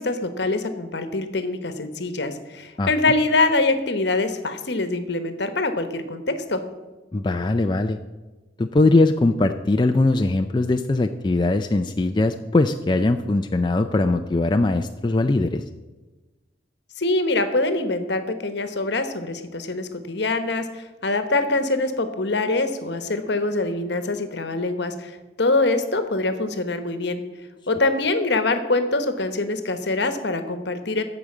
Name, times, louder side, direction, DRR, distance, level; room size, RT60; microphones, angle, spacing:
voice 1, 0.0-6.6 17.0-25.1 25.4-27.2 27.7-31.0, left 2 dB, 65° left, 9 dB, 1.1 m, -24 dB
voice 2, 7.1-8.0 8.6-15.6, left 2 dB, 25° left, 6 dB, 0.4 m, -21 dB
14.0 x 5.0 x 7.2 m, 1.2 s
head